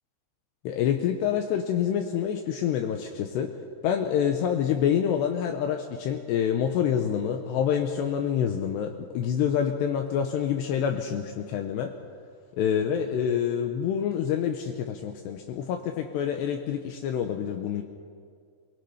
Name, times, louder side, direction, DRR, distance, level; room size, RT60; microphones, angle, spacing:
voice 1, 0.6-3.5 3.8-11.9 12.6-17.8, left 8 dB, 75° left, 4 dB, 3.0 m, -27 dB
23.5 x 22.5 x 5.7 m, 2.1 s
omnidirectional pair, 5.0 m